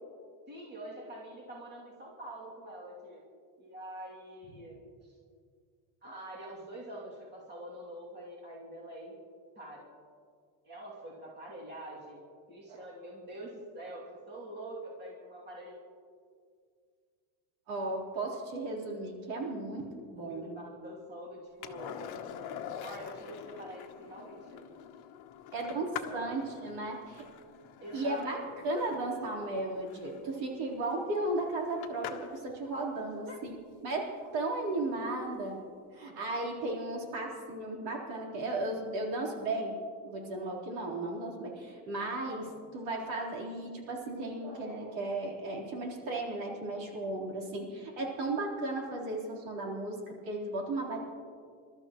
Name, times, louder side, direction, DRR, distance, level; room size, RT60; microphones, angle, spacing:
voice 1, 0.5-3.2 3.6-4.8 5.0-5.1 6.0-9.2 9.6-9.9 10.6-15.8 20.2-21.9 22.3-22.4 22.8-24.7 25.6-26.5 27.8-28.6 33.2-33.4 42.3-42.8, right 1 dB, 20° right, -5 dB, 2.7 m, -46 dB
voice 2, 17.7-20.6 21.8-21.9 25.5-27.3 27.9-28.4 28.6-33.6 33.8-35.6 35.9-39.8 40.0-42.5 42.7-51.0, right 2 dB, 70° right, -2 dB, 4.0 m, -35 dB
Skateboard, 21.6-32.5 35.1-35.2, left 9 dB, 50° left, 1.1 m, -46 dB
28.0 x 13.0 x 3.1 m, 2.1 s
cardioid pair, 165°, 47 cm